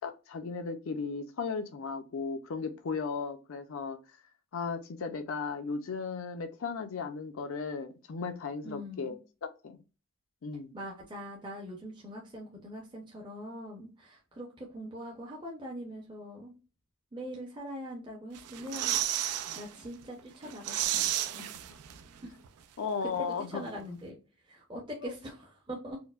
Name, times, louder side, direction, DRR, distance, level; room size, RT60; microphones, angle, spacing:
voice 1, 0.0-4.0 4.5-9.2 9.4-9.8 10.4-10.7 19.5-19.6 22.8-23.6 25.0-25.1, left 5 dB, 65° left, 7 dB, 0.4 m, -36 dB
voice 2, 8.6-9.2 10.7-16.6 17.1-21.5 23.0-24.2 24.5-26.0, equal, 20° right, -2 dB, 0.6 m, -42 dB
sound 1, 18.3-19.6 20.0-20.1 20.4-22.2 22.4-22.5, right 12 dB, 90° right, 0.4 m, -32 dB
4.4 x 2.0 x 2.3 m, 0.32 s
head